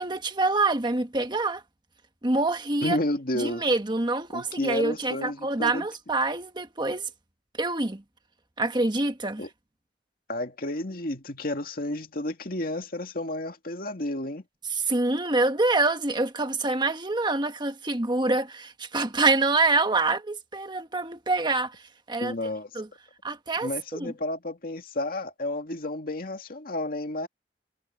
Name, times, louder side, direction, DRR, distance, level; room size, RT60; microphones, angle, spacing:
voice 1, 0.0-1.6 2.2-3.0 3.3-7.1 7.6-8.0 8.6-9.4 14.7-21.8 22.1-22.3 22.7-22.9 23.2-24.1, right 3 dB, 25° right, 1.4 m, -26 dB
voice 2, 2.8-3.6 4.3-5.8 9.4-9.5 10.3-14.4 22.2-22.7 23.6-27.3, left 1 dB, 55° left, 2.3 m, -31 dB
head